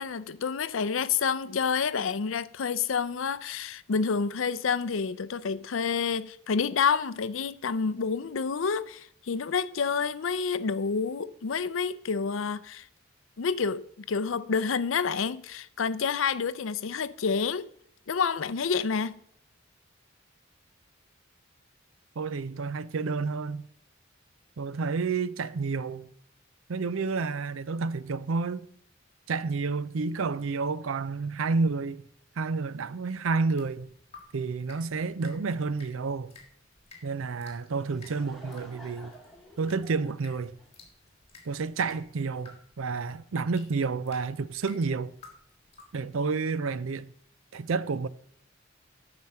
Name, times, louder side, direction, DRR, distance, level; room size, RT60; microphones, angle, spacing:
voice 1, 0.0-12.9 13.4-17.7 18.1-19.2, left 5 dB, 75° left, 0.5 m, -28 dB
voice 2, 22.2-23.7 24.6-26.1 26.7-28.7 29.3-32.1 32.4-33.9 34.3-36.3 37.0-39.1 39.6-40.5 41.5-45.2 45.9-47.1 47.5-48.1, right 4 dB, 80° right, 0.5 m, -30 dB
sound 1, 33.5-46.0, left 4 dB, 30° left, 2.4 m, -55 dB
Laughter / Crowd, 37.6-41.4, equal, ahead, 1.7 m, -51 dB
8.9 x 6.0 x 7.5 m
head